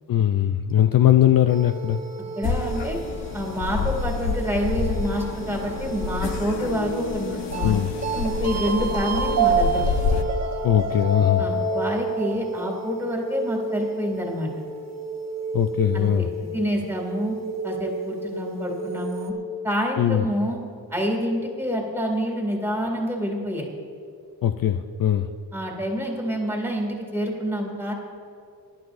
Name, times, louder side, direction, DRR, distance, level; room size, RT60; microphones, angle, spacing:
voice 1, 0.1-2.0 7.6-7.9 10.6-11.4 15.5-16.3 20.0-20.3 24.4-25.3, left 11 dB, 50° left, 8 dB, 0.5 m, -20 dB
sound 1, 1.5-19.3, right 3 dB, 35° right, 1.1 m, -30 dB
sound 2, 2.4-10.2, left 5 dB, 70° left, 1.1 m, -28 dB
voice 2, 2.4-3.0 3.3-7.8 8.1-9.8 11.4-14.5 15.9-16.2 16.5-17.3 17.6-19.3 19.6-20.6 20.9-23.7 25.5-27.9, equal, 5° right, -1 dB, 2.4 m, -27 dB
24.5 x 11.5 x 2.6 m, 2.5 s
wide cardioid pair, 140°, 44 cm